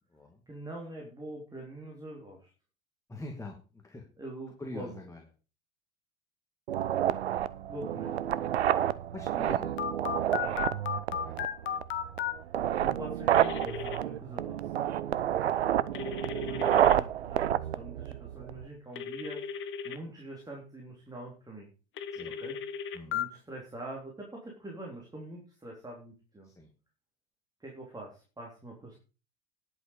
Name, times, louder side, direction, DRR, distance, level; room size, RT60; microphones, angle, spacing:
voice 1, 0.5-2.5 4.2-5.0 7.7-8.1 10.4-10.6 12.3-14.7 16.4-21.7 22.2-22.6 23.1-26.5 27.6-29.0, right 1 dB, 10° right, -1 dB, 3.7 m, -44 dB
voice 2, 3.1-4.0 4.6-5.2 9.1-9.7 11.3-11.4 15.3-15.5 22.1-22.4 22.9-23.2 26.4-26.7, left 2 dB, 10° left, 1 dB, 2.4 m, -43 dB
sound 1, 6.7-18.7, right 11 dB, 75° right, 0.7 m, -29 dB
Telephone, 9.8-12.3 13.3-14.0 15.9-17.0 19.0-20.0 22.0-23.2, left 8 dB, 35° left, 1.3 m, -35 dB
11.0 x 7.9 x 5.5 m, 0.35 s
figure-of-eight pair, 75°, 33 cm